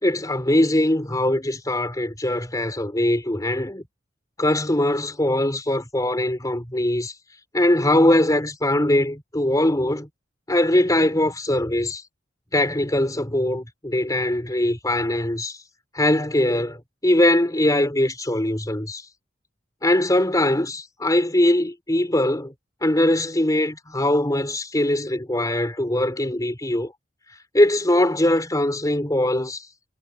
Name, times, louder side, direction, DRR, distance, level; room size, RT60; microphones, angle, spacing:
voice 1, 0.0-3.8 4.4-7.1 7.5-10.1 10.5-12.0 12.5-15.6 15.9-19.0 19.8-22.5 22.8-26.9 27.5-29.6, left 1 dB, 20° left, 3.9 m, -21 dB
head